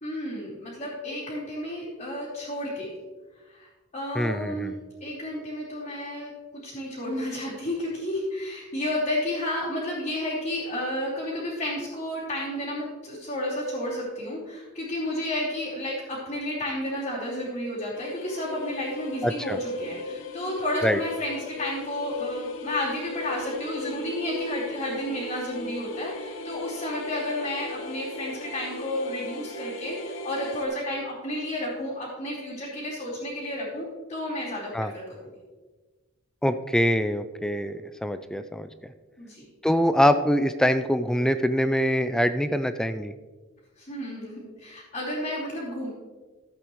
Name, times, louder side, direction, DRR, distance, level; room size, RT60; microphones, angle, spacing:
voice 1, 0.0-2.9 3.5-6.3 6.6-35.3 39.2-39.4 43.8-45.9, left 1 dB, 30° left, -10 dB, 3.1 m, -32 dB
voice 2, 4.2-4.8 19.2-19.6 20.8-21.0 34.7-34.9 36.4-38.7 39.6-43.1, equal, 5° left, 10 dB, 0.3 m, -24 dB
sound 1, 17.9-30.7, left 2 dB, 70° left, 0.9 m, -37 dB
13.5 x 8.6 x 3.1 m, 1.3 s
head